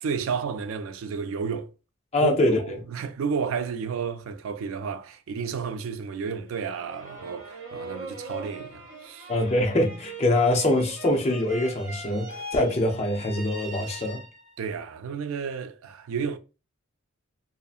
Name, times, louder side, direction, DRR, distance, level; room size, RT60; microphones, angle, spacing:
voice 1, 0.0-1.7 2.2-9.3 14.6-16.4, right 6 dB, 75° right, 0.3 m, -32 dB
voice 2, 2.1-2.8 9.3-14.2, left 1 dB, 30° left, 0.5 m, -24 dB
sound 1, 6.5-14.7, right 2 dB, 20° right, 1.4 m, -41 dB
2.6 x 2.4 x 2.4 m
head